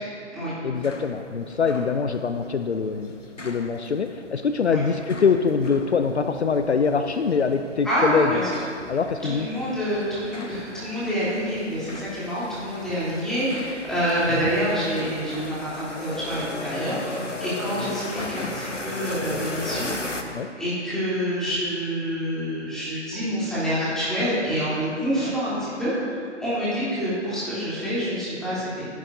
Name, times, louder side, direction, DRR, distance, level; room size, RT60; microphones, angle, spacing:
voice 1, 0.6-3.1 3.4-8.4 8.9-9.5 14.4-14.5 20.3-20.5 25.2-25.3, left 5 dB, 65° left, 8 dB, 0.6 m, -24 dB
sound 1, 0.8-20.2, left 2 dB, 80° left, 1.3 m, -37 dB
voice 2, 7.8-8.5 9.2-20.2 20.6-28.9, equal, ahead, -11 dB, 3.3 m, -27 dB
20.5 x 11.0 x 2.7 m, 2.4 s
figure-of-eight pair, 135°, 36 cm